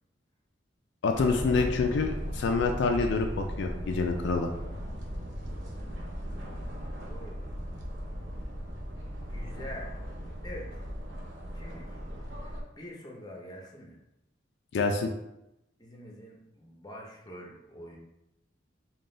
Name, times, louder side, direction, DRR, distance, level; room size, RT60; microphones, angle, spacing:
voice 1, 1.0-4.5 14.7-15.1, left 4 dB, 70° left, 4 dB, 0.3 m, -27 dB
sound 1, 1.1-12.6, equal, 70° right, 0.6 m, -38 dB
voice 2, 4.5-4.8 5.7-6.0 7.0-7.7 9.3-9.9 10.4-10.9 11.5-12.0 12.4-14.0 15.8-18.0, left 1 dB, 20° left, -1 dB, 0.6 m, -46 dB
3.8 x 2.2 x 3.7 m, 0.88 s
head